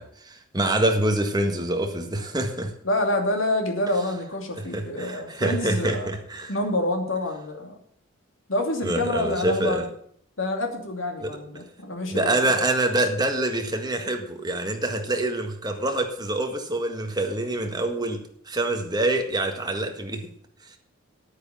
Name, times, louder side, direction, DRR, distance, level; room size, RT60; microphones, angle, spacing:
voice 1, 0.0-2.7 4.6-6.5 8.8-9.9 11.2-11.3 12.1-20.3 20.6-20.8, right 2 dB, 20° right, 1.7 m, -26 dB
voice 2, 2.8-6.1 6.5-7.8 8.5-9.8 10.4-12.4, left 1 dB, 70° left, 2.8 m, -27 dB
10.0 x 9.3 x 7.2 m
head